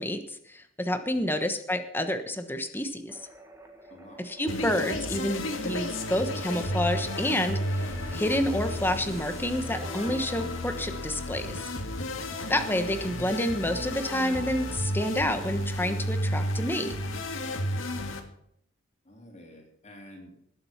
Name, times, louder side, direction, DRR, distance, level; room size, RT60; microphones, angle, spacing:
voice 1, 0.0-3.3 4.2-11.6 12.5-16.9, left 1 dB, 10° left, 8 dB, 1.2 m, -29 dB
voice 2, 1.1-1.4 3.9-4.2 12.2-12.5 19.0-20.5, equal, 35° left, 1 dB, 3.1 m, -49 dB
sound 1, 3.1-11.7, right 2 dB, 15° right, 1.6 m, -50 dB
sound 2, 4.5-18.2, left 1 dB, 70° left, 2.0 m, -32 dB
19.5 x 7.8 x 5.8 m, 0.73 s
head